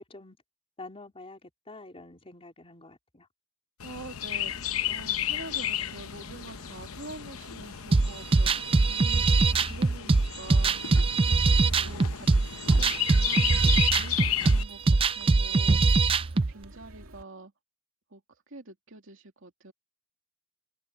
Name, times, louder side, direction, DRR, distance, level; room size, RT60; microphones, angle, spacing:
voice 1, 0.8-3.3, left 2 dB, 30° left, 3.4 m, -47 dB
Chirp tweet, 3.8-14.6, left 11 dB, 90° left, 0.8 m, -34 dB
voice 2, 3.8-11.0 11.3-11.4 11.8-12.3 12.6-15.8 16.3-17.5 18.1-18.2 18.5-19.7, right 2 dB, 65° right, 2.7 m, -46 dB
sound 1, 4.4-17.2, right 1 dB, 85° right, 2.4 m, -51 dB
sound 2, 7.9-16.5, right 3 dB, 25° right, 0.4 m, -22 dB
head